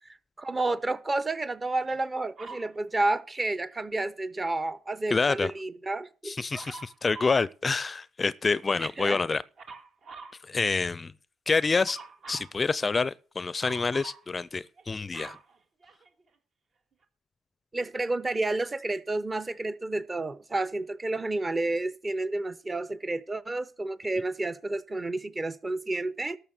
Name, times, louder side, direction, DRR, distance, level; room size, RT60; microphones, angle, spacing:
voice 1, 0.1-6.3 8.8-9.2 17.7-26.4, right 2 dB, 25° right, 1.0 m, -30 dB
Dog, 2.4-2.7 6.5-7.4 9.6-10.4 11.8-12.5 13.6-14.2 14.8-16.3 17.0-17.1, right 4 dB, 55° right, 2.0 m, -45 dB
voice 2, 5.1-5.5 6.2-9.4 10.5-11.1 11.5-12.0 12.3-15.4, left 4 dB, 30° left, 0.5 m, -27 dB
12.5 x 6.8 x 6.6 m
supercardioid pair, 65°, 0 cm